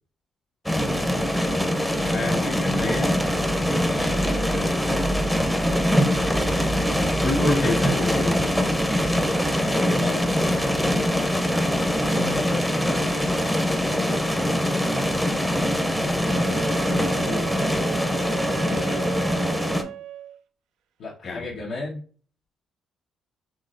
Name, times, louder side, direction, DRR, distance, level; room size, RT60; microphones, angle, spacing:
sound 1, 0.7-19.8, equal, 5° left, 0.7 m, -23 dB
voice 1, 2.0-3.1 3.9-5.0 6.8-8.4 15.8-17.4 18.6-19.6 21.2-21.5, left 3 dB, 55° left, 1 dB, 1.9 m, -31 dB
voice 2, 9.5-10.2 10.7-11.5 12.1-13.4 13.9-14.6 21.0-22.0, left 3 dB, 70° left, -7 dB, 1.2 m, -34 dB
Wind instrument woodwind instrument, 16.2-20.4, right 12 dB, 90° right, 0.3 m, -36 dB
5.6 x 3.1 x 2.5 m, 0.42 s
cardioid pair, 90°, 0 cm